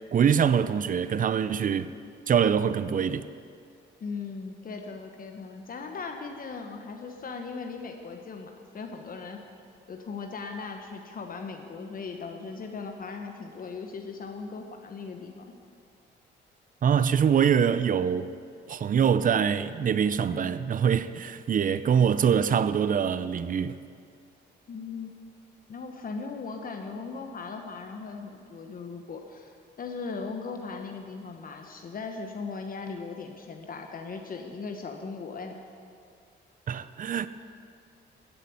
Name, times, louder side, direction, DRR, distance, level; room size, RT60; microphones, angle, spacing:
voice 1, 0.1-1.9 2.3-3.3 16.8-18.3 18.7-23.8 36.7-37.3, right 7 dB, 45° right, 0.6 m, -24 dB
voice 2, 4.0-9.4 9.9-15.4 24.7-25.1 25.7-35.6, left 4 dB, 45° left, 1.2 m, -38 dB
14.5 x 7.5 x 8.5 m
cardioid pair, 90°, 20 cm